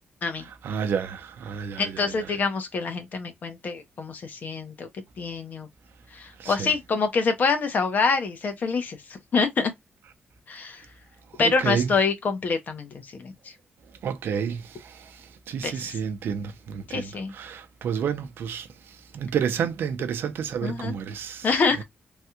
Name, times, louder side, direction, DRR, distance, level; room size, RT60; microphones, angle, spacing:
voice 1, 0.6-2.0 6.4-6.7 11.4-11.9 14.0-15.1 15.5-18.7 19.1-21.5, right 7 dB, 80° right, 0.5 m, -30 dB
voice 2, 1.8-4.9 5.2-5.7 6.1-9.7 10.5-10.8 11.4-13.5 15.6-16.0 16.9-17.3 20.6-21.0 21.4-21.8, left 4 dB, 50° left, 0.8 m, -26 dB
3.3 x 2.3 x 2.8 m
wide cardioid pair, 140°, 4 cm